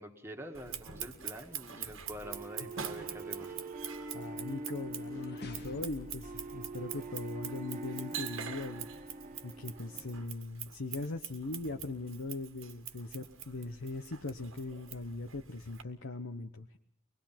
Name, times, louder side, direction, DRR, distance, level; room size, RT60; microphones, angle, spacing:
voice 1, 0.0-3.5, equal, 10° right, 4 dB, 2.0 m, -46 dB
Scissors, 0.5-15.8, right 9 dB, 65° right, 1.7 m, -45 dB
sound 1, 2.2-10.2, right 2 dB, 40° right, 1.7 m, -44 dB
voice 2, 4.1-8.9 9.4-16.8, left 2 dB, 65° left, 4 dB, 1.1 m, -40 dB
sound 2, 4.6-7.7, left 1 dB, 50° left, 1.6 m, -51 dB
24.5 x 20.5 x 5.9 m, 0.62 s
head